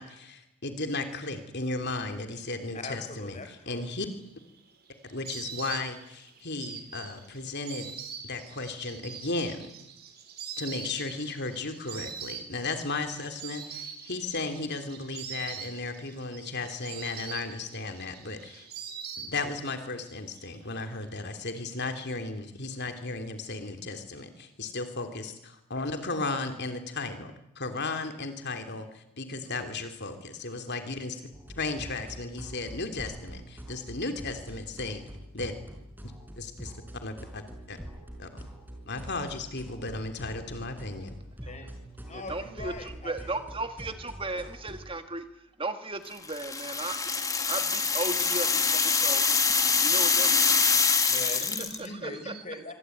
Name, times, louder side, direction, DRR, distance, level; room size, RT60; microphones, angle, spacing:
voice 1, 0.0-4.1 5.0-7.9 8.2-9.7 10.6-18.7 19.2-27.3 27.5-31.2 31.6-35.0 35.3-35.5 36.0-36.7 37.0-37.8 38.2-38.4 38.9-41.1, left 3 dB, 50° left, 7 dB, 3.1 m, -35 dB
voice 2, 2.7-3.8 41.5-41.7 42.1-43.5 44.3-44.5 51.0-52.7, left 2 dB, 30° left, 7 dB, 5.7 m, -41 dB
Insect, 4.1-19.8 20.1-20.9, right 7 dB, 45° right, 4.3 m, -43 dB
sound 1, 31.3-44.9, equal, 10° right, 5.4 m, -44 dB
voice 3, 42.1-45.3 45.6-47.0 47.5-49.3 49.8-51.2 51.8-52.3, right 2 dB, 25° right, 8 dB, 1.6 m, -36 dB
sound 2, 46.3-51.9, left 5 dB, 15° left, 2.0 m, -25 dB
26.5 x 24.0 x 9.3 m, 0.83 s
head